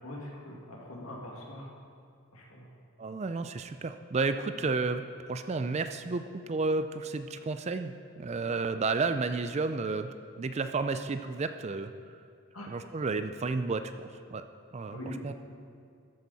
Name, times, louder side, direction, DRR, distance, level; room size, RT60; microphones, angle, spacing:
voice 1, 0.0-1.7 2.3-2.7 4.6-4.7 8.4-8.5 12.5-12.7 14.9-15.2, left 1 dB, 80° left, -2 dB, 2.2 m, -42 dB
voice 2, 3.0-11.9 12.7-14.4 14.7-15.3, right 3 dB, 30° right, 9 dB, 0.4 m, -32 dB
13.0 x 8.3 x 4.1 m, 2.3 s
head